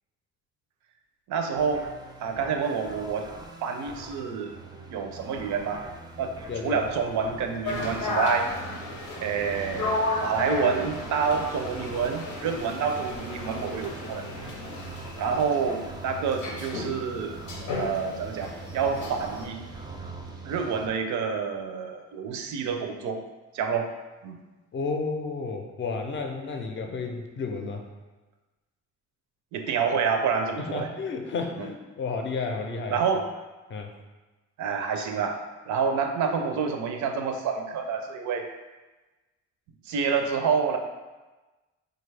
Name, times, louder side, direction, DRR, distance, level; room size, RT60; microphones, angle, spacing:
voice 1, 1.3-1.9 2.2-3.3 3.6-4.6 4.9-5.9 6.2-6.3 6.6-8.5 9.2-14.3 15.2-17.4 17.8-19.6 20.4-23.2 23.5-23.9 24.2-24.4 29.5-30.9 31.6-31.7 32.9-33.2 34.6-35.4 35.7-38.5 39.9-40.8, right 6 dB, 70° right, 5 dB, 0.5 m, -28 dB
sound 1, 1.6-20.9, right 3 dB, 15° right, 0.4 m, -42 dB
voice 2, 6.5-6.9 24.7-27.9 30.6-33.0 33.7-33.9, left 4 dB, 40° left, 4 dB, 0.5 m, -32 dB
sound 2, 7.6-19.5, left 2 dB, 85° left, 0.7 m, -34 dB
3.6 x 2.3 x 3.2 m, 1.2 s
cardioid pair, 90°, 30 cm